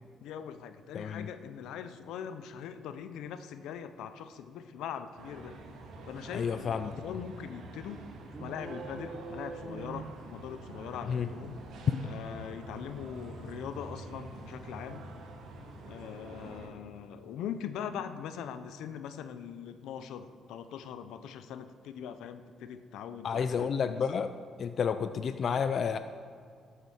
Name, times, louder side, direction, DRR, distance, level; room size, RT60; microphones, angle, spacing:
voice 1, 0.2-5.6 6.1-8.0 8.4-11.6 12.0-15.0 15.8-24.0 25.1-25.3 25.7-25.9, left 8 dB, 85° left, 10 dB, 0.7 m, -42 dB
voice 2, 0.9-1.3 6.3-6.9 11.1-11.3 11.9-12.1 23.2-24.3 24.6-26.0, left 6 dB, 55° left, 10 dB, 0.4 m, -30 dB
sound 1, 5.2-16.7, right 2 dB, 80° right, 1.9 m, -47 dB
sound 2, 8.2-10.8, right 4 dB, 45° right, 1.2 m, -43 dB
13.0 x 7.9 x 6.4 m, 2.3 s
cardioid pair, 90°, 0 cm